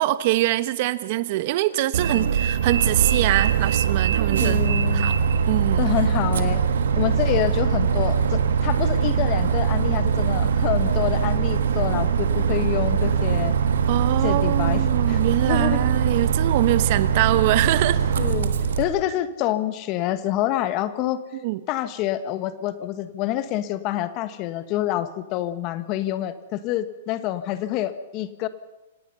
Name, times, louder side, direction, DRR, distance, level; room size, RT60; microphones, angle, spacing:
voice 1, 0.0-4.6 4.9-5.2 5.5-5.9 13.9-18.0 21.4-21.6, right 17 dB, 50° right, 15 dB, 1.1 m, -23 dB
Bus, 1.9-18.8, right 7 dB, 75° right, 1.7 m, -22 dB
voice 2, 4.4-5.1 5.8-6.6 7.0-13.6 14.2-14.8 15.1-15.2 15.5-15.8 18.2-18.5 18.8-21.2 21.7-28.5, left 13 dB, 40° left, 12 dB, 1.5 m, -27 dB
26.5 x 18.0 x 5.7 m, 1.0 s
hypercardioid pair, 130°, 0 cm